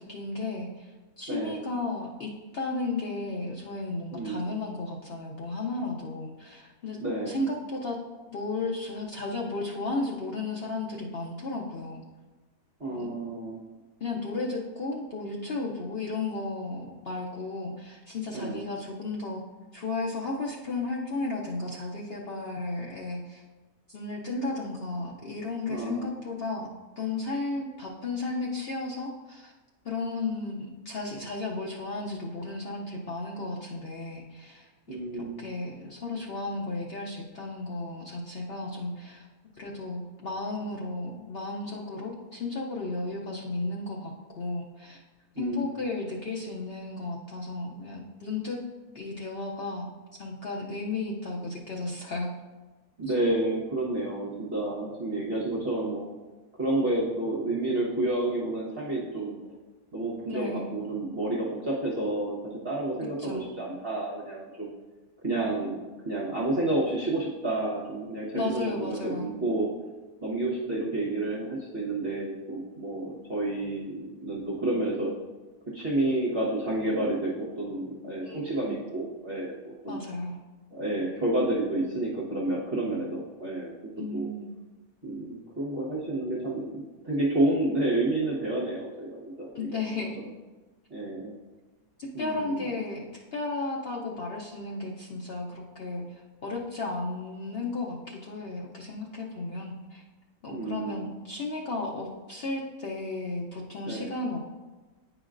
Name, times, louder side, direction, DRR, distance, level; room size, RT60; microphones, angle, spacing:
voice 1, 0.0-7.0 7.3-8.0 8.3-12.0 12.9-13.3 14.0-19.4 19.7-23.4 23.9-26.7 27.0-29.5 29.8-39.3 39.6-45.0 45.4-48.6 48.9-49.9 50.2-52.3 60.3-60.7 63.2-63.4 68.3-69.3 78.2-78.8 79.9-80.4 84.0-84.5 89.5-90.2 92.0-93.0 93.3-96.0 96.4-100.0 100.4-104.4, left 3 dB, 60° left, -2 dB, 0.6 m, -34 dB
voice 2, 1.3-1.6 4.1-4.4 7.0-7.4 12.8-13.6 18.3-18.6 25.7-26.1 34.9-35.4 45.3-45.7 53.0-56.0 56.6-59.5 59.9-64.7 65.2-65.8 66.0-69.7 70.2-75.1 75.7-80.0 80.7-83.7 84.1-84.3 85.0-89.8 90.9-91.3 92.1-92.7 100.5-101.1 103.9-104.1, right 2 dB, 40° right, -6 dB, 1.3 m, -30 dB
9.4 x 5.0 x 2.5 m, 1.2 s
omnidirectional pair, 1.7 m